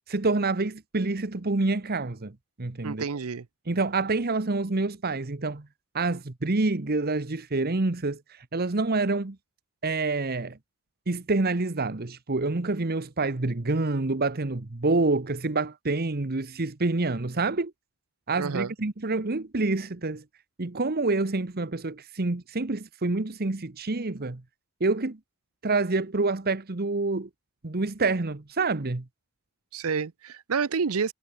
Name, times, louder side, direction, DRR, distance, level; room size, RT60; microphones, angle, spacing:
voice 1, 0.1-3.0 3.7-5.7 5.9-9.4 9.8-10.6 11.1-17.7 18.3-20.2 20.6-24.4 24.8-25.2 25.6-27.3 27.6-29.1, right 3 dB, 45° right, 1.1 m, -27 dB
voice 2, 2.8-3.5 18.4-18.7 29.7-31.1, right 5 dB, 70° right, 0.6 m, -29 dB
head